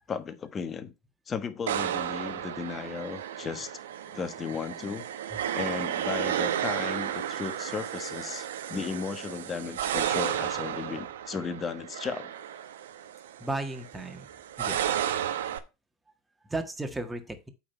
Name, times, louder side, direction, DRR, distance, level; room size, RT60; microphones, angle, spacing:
voice 1, 0.1-0.9 1.3-3.7 4.1-5.1 5.5-12.3, left 5 dB, 25° left, 1.2 m, -35 dB
sound 1, 1.7-15.6, right 10 dB, 85° right, 0.9 m, -33 dB
voice 2, 13.4-14.3 14.6-14.8 16.5-17.5, right 2 dB, 10° right, 1.6 m, -34 dB
8.7 x 3.9 x 5.7 m
hypercardioid pair, 105°, 0 cm